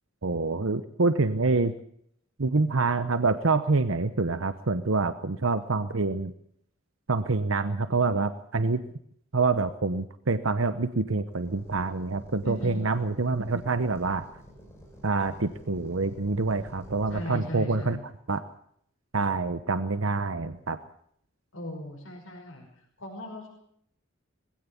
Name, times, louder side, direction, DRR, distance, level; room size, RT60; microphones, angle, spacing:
voice 1, 0.2-1.7 2.4-6.3 7.1-8.8 9.3-14.3 15.0-18.0 18.3-18.4 19.1-20.8, right 3 dB, 80° right, 11 dB, 1.0 m, -26 dB
sound 1, 11.3-17.3, equal, 15° left, 6.3 m, -49 dB
voice 2, 12.4-12.8 17.1-18.1 21.5-23.5, equal, 80° left, 0 dB, 5.5 m, -38 dB
20.5 x 16.5 x 8.4 m, 0.69 s
head